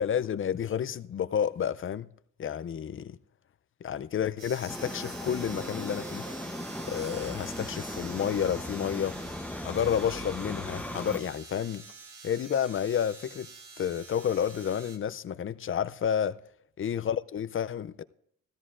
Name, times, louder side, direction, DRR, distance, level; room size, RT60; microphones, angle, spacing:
voice 1, 0.0-2.1 2.4-3.2 3.8-6.2 6.9-9.1 9.6-11.8 12.2-13.5 13.8-16.4 16.8-18.0, left 8 dB, 40° left, 0.5 m, -30 dB
sound 1, 4.4-15.0, right 4 dB, 80° right, 1.9 m, -47 dB
sound 2, 4.7-11.2, left 1 dB, 5° left, 0.8 m, -38 dB
16.0 x 13.5 x 2.5 m
cardioid pair, 95°, 32 cm